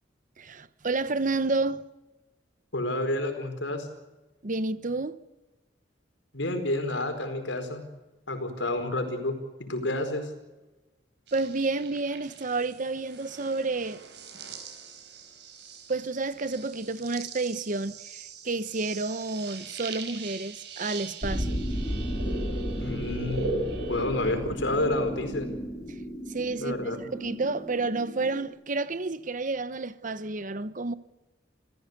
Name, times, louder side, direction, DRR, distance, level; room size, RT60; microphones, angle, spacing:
voice 1, 0.4-1.8 4.4-5.2 11.3-14.0 15.9-21.7 25.9-26.0 26.3-30.9, right 3 dB, 45° right, 1.0 m, -30 dB
voice 2, 2.7-3.9 6.3-7.8 8.3-9.3 9.6-10.3 22.8-23.5 23.9-25.5 26.6-27.0, left 1 dB, 85° left, 4.7 m, -29 dB
sound 1, 11.3-24.1, right 3 dB, 65° right, 4.7 m, -40 dB
sound 2, 21.2-28.5, equal, 20° left, 5.4 m, -34 dB
28.5 x 15.0 x 8.1 m
head